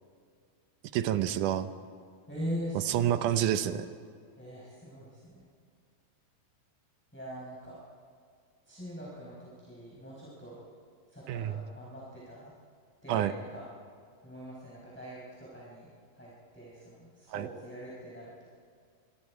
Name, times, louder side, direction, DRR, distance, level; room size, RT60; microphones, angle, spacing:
voice 1, 0.9-1.7 2.9-3.9 11.3-11.6 13.1-13.3 17.3-17.5, right 11 dB, 75° right, 11 dB, 2.1 m, -28 dB
voice 2, 2.3-3.2 4.4-5.4 7.1-7.8 8.6-10.6 11.1-12.5 13.0-13.7 14.2-18.4, equal, 5° left, -6 dB, 4.6 m, -42 dB
25.0 x 25.0 x 4.8 m, 2.1 s
omnidirectional pair, 4.1 m